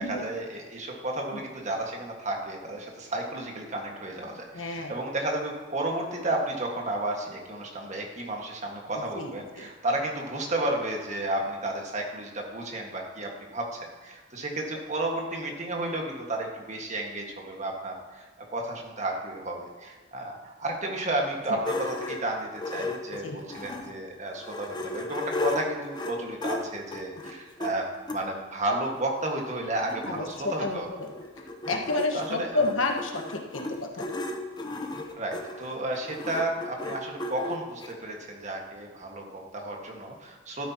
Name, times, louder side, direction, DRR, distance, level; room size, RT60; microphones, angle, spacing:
voice 1, 0.0-30.9 32.1-32.6 35.2-40.7, right 1 dB, 35° right, 1 dB, 1.6 m, -32 dB
voice 2, 4.5-5.0 9.1-9.7 21.5-21.6 23.2-23.4 30.1-31.1 31.7-34.0, left 2 dB, 80° left, 3 dB, 1.3 m, -30 dB
sound 1, 21.6-24.0 24.4-28.2 29.0-29.1 29.4-29.5 29.6-37.9, left 2 dB, 20° left, 0.8 m, -35 dB
12.5 x 9.8 x 2.9 m, 1.4 s
head